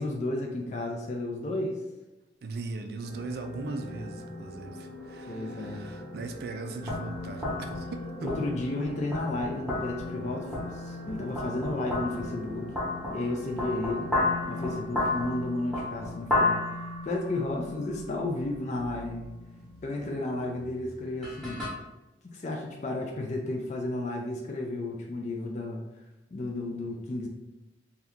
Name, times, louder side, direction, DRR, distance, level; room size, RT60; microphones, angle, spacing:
voice 1, 0.0-1.8 5.3-5.8 8.2-12.7 13.1-14.1 14.5-16.6 17.0-19.3 19.8-21.6 22.2-25.8 26.3-27.3, left 2 dB, 40° left, 0 dB, 0.4 m, -32 dB
voice 2, 2.4-8.4, right 3 dB, 55° right, 6 dB, 0.3 m, -39 dB
sound 1, 3.0-14.8, left 1 dB, 75° left, 1.0 m, -43 dB
sound 2, 6.8-21.7, left 2 dB, ahead, 0.9 m, -34 dB
2.7 x 2.3 x 3.4 m, 1.0 s
head